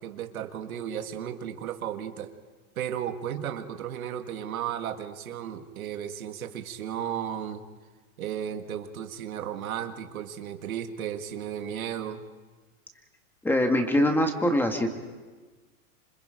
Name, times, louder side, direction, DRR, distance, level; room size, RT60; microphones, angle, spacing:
voice 1, 0.0-2.3 2.8-7.6 8.2-12.2, right 9 dB, 90° right, 7 dB, 2.0 m, -34 dB
voice 2, 13.4-14.9, left 1 dB, 5° left, 4 dB, 1.6 m, -23 dB
27.0 x 25.5 x 5.2 m, 1.3 s
supercardioid pair, 155°, 41 cm